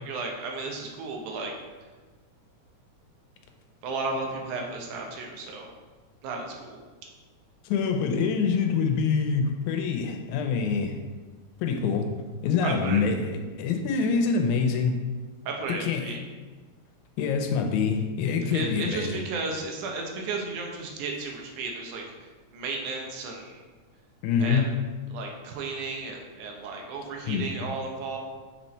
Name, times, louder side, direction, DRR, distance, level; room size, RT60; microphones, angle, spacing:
voice 1, 0.1-1.5 3.8-5.7 6.2-6.8 12.6-13.0 15.5-16.2 18.5-22.0 22.5-23.6 24.4-24.6 25.1-28.2, right 3 dB, 85° right, 1 dB, 2.4 m, -34 dB
voice 2, 7.6-11.0 11.6-12.1 12.4-15.0 15.7-16.2 17.2-19.2 24.2-24.8 27.2-27.5, left 5 dB, 85° left, 5 dB, 2.1 m, -25 dB
6.0 x 4.4 x 4.1 m, 1.3 s
omnidirectional pair, 3.4 m